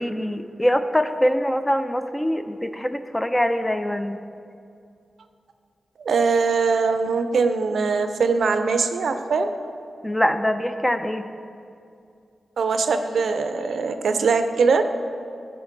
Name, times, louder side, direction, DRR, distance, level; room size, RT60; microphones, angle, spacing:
voice 1, 0.0-4.2 10.0-11.3, equal, 10° left, 9 dB, 0.4 m, -23 dB
voice 2, 6.0-9.5 12.6-14.8, right 4 dB, 75° right, 8 dB, 0.5 m, -21 dB
14.0 x 5.2 x 3.8 m, 2.4 s
wide cardioid pair, 140°, 0 cm